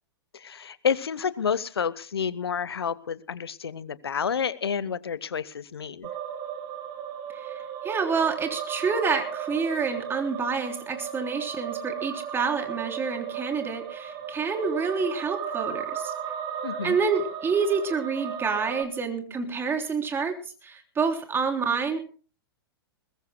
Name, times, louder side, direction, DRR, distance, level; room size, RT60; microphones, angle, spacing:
voice 1, 0.3-6.1 16.6-17.0, left 7 dB, 75° left, 18 dB, 1.1 m, -29 dB
sound 1, 6.0-18.8, right 8 dB, 35° right, 2.5 m, -35 dB
voice 2, 7.3-16.1 16.8-22.0, right 5 dB, 15° right, 5 dB, 3.5 m, -28 dB
21.0 x 20.5 x 2.2 m, 0.37 s
figure-of-eight pair, 105°, 13 cm